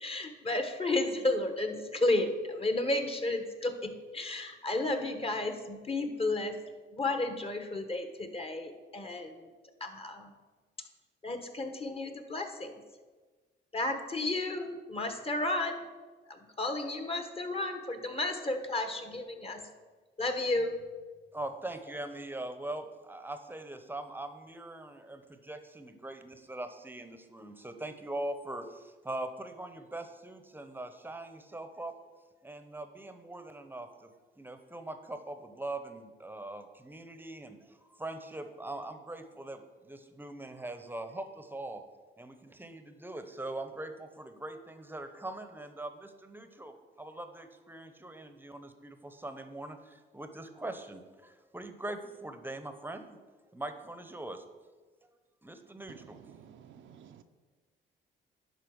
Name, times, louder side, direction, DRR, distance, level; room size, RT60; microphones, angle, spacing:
voice 1, 0.0-6.6 6.9-9.4 9.8-10.3 11.2-12.7 13.7-15.9 16.3-19.6 20.2-20.7, left 2 dB, 30° left, 7 dB, 1.2 m, -32 dB
voice 2, 21.3-31.9 32.4-34.1 34.4-41.8 42.2-53.2 53.5-54.7 55.4-56.2, right 2 dB, 10° right, 8 dB, 0.9 m, -42 dB
voice 3, 56.7-57.2, right 8 dB, 70° right, 7 dB, 0.7 m, -53 dB
11.0 x 4.1 x 6.3 m, 1.4 s
cardioid pair, 90°, 20 cm